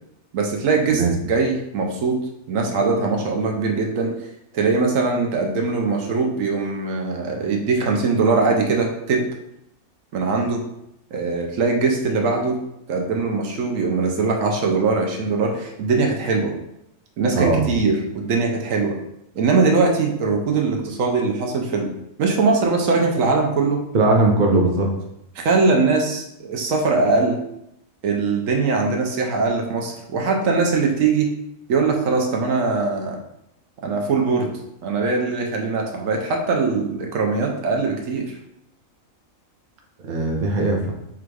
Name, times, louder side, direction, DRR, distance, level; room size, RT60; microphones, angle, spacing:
voice 1, 0.3-4.1 4.5-9.2 10.1-10.6 11.1-12.6 12.9-16.5 17.2-19.0 19.3-21.9 22.2-23.8 25.3-27.4 28.0-31.3 31.7-33.2 33.8-34.5 34.8-38.4, right 4 dB, 75° right, 2 dB, 1.1 m, -21 dB
voice 2, 17.3-17.7 23.9-24.9 40.0-40.9, right 2 dB, 45° right, 1 dB, 0.7 m, -19 dB
3.5 x 2.5 x 4.5 m, 0.81 s
omnidirectional pair, 1.4 m